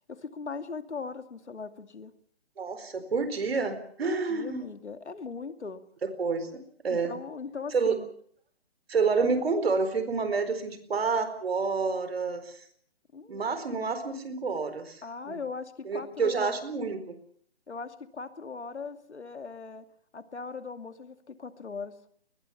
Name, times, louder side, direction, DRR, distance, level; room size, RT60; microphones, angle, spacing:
voice 1, 0.1-2.1 4.0-5.8 6.9-8.1 13.1-13.5 15.0-16.6 17.7-19.8 20.1-21.9, left 4 dB, 85° left, 9 dB, 2.6 m, -39 dB
voice 2, 2.6-4.7 6.0-7.2 7.7-8.0 8.9-12.6 13.3-15.4 15.8-17.2, right 4 dB, 65° right, 11 dB, 4.5 m, -29 dB
21.5 x 21.0 x 7.2 m, 0.62 s
hypercardioid pair, 160°, 33 cm